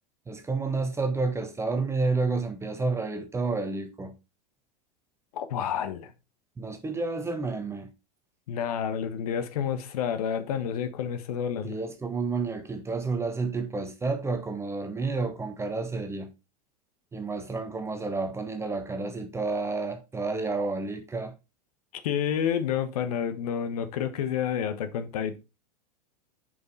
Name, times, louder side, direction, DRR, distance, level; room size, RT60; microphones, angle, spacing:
voice 1, 0.3-4.1 6.6-7.9 11.6-16.3 17.1-21.3, right 3 dB, 15° right, 1.2 m, -30 dB
voice 2, 5.3-6.1 8.5-11.8 22.0-25.4, left 8 dB, 65° left, 1.2 m, -29 dB
6.6 x 5.3 x 4.0 m
hypercardioid pair, 95°, 21 cm